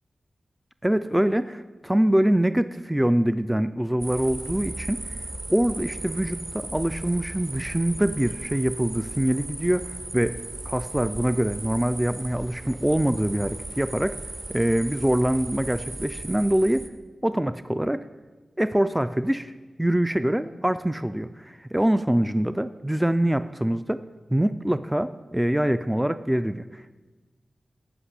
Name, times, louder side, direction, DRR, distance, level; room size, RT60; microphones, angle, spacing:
voice 1, 0.8-5.2 5.5-9.8 10.1-10.3 10.7-14.2 14.5-16.9 17.2-18.0 18.6-19.5 19.8-24.0 24.3-26.9, right 1 dB, 10° right, 12 dB, 0.3 m, -24 dB
sound 1, 4.0-16.9, right 2 dB, 40° right, 0.9 m, -36 dB
12.0 x 5.2 x 8.2 m, 1.3 s
cardioid pair, 65°, 0 cm